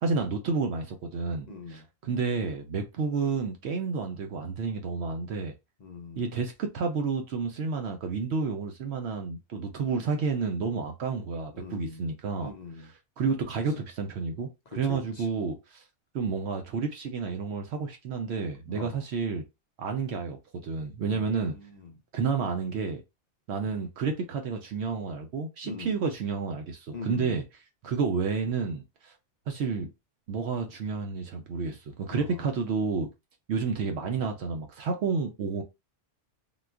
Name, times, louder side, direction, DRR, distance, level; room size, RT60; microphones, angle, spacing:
voice 1, 0.0-5.5 6.2-15.8 16.1-19.4 19.8-21.5 22.1-23.0 23.5-27.4 27.8-29.1 29.5-29.9 30.3-33.1 33.5-35.6, right 5 dB, 70° right, 0.8 m, -30 dB
voice 2, 1.5-1.9 5.8-6.2 11.5-12.1 12.4-12.9 14.8-15.3 18.7-19.0 21.1-21.9 25.6-26.0 26.9-27.4 32.1-32.5, left 4 dB, 50° left, 0.5 m, -41 dB
3.8 x 2.2 x 2.3 m
omnidirectional pair, 1.2 m